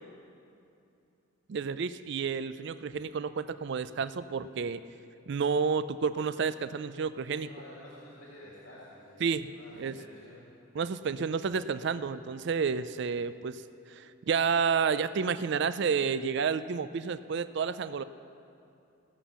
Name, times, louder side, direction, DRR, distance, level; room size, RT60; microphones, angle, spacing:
voice 1, 1.5-4.8 5.3-7.5 9.2-9.5 9.8-10.0 10.8-13.6 13.9-18.0, right 6 dB, 55° right, 14 dB, 0.4 m, -30 dB
voice 2, 7.2-10.5, left 1 dB, 80° left, -6 dB, 2.2 m, -50 dB
16.5 x 7.3 x 6.9 m, 2.6 s
head